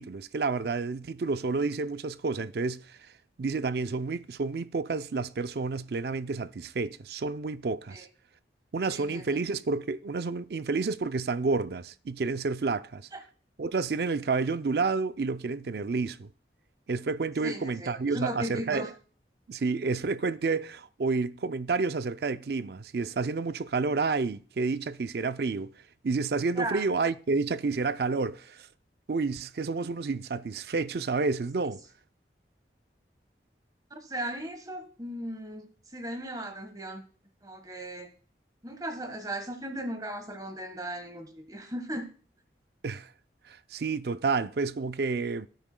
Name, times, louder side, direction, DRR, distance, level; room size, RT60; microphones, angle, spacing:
voice 1, 0.0-3.0 3.4-8.1 8.7-13.0 13.6-16.3 16.9-18.9 19.5-25.7 26.0-28.7 29.1-31.8 42.8-43.1 43.5-45.5, right 4 dB, 65° right, 0.4 m, -30 dB
voice 2, 8.9-9.4 13.1-13.2 17.4-18.9 26.5-26.8 33.9-37.0 37.4-38.1 38.6-42.1, right 1 dB, 20° right, 1.4 m, -37 dB
17.0 x 9.1 x 2.2 m
head